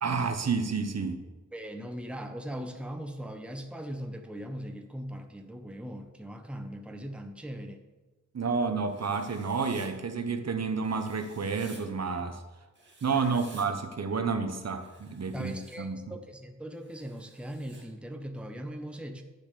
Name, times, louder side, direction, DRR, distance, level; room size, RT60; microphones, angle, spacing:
voice 1, 0.0-1.2 8.3-12.4 13.0-16.0, right 5 dB, 55° right, 7 dB, 1.0 m, -30 dB
voice 2, 1.5-7.8 13.1-13.4 15.3-19.2, equal, 5° right, 5 dB, 0.9 m, -40 dB
Writing, 8.9-9.9 10.8-11.8 12.8-13.7 14.7-15.8 16.8-17.8, right 2 dB, 35° right, 2.5 m, -54 dB
10.0 x 6.7 x 6.8 m, 1.2 s
wide cardioid pair, 115°, 31 cm